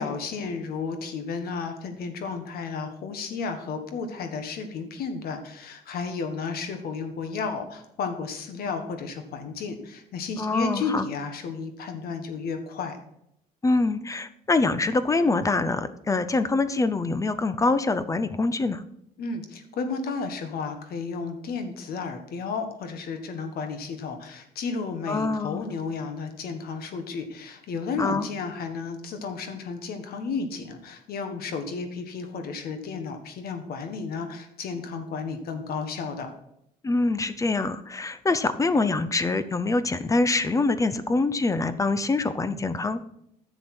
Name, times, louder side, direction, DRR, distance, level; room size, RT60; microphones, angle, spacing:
voice 1, 0.0-13.0 19.2-36.3, left 4 dB, 65° left, 7 dB, 1.6 m, -33 dB
voice 2, 10.4-11.1 13.6-18.8 25.1-25.7 28.0-28.3 36.8-43.0, left 3 dB, 20° left, 13 dB, 0.6 m, -25 dB
10.5 x 7.1 x 4.4 m, 0.76 s
cardioid pair, 110°, 17 cm